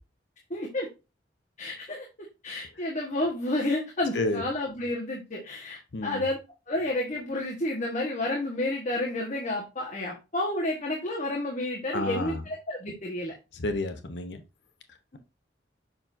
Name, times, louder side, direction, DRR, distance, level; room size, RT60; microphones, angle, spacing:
voice 1, 0.5-0.9 1.6-2.1 2.4-6.4 6.7-13.3, left 1 dB, 40° left, 1.3 m, -30 dB
voice 2, 5.9-6.2 11.9-12.4 13.6-14.4, left 2 dB, 70° left, 0.8 m, -30 dB
6.9 x 5.7 x 2.6 m
head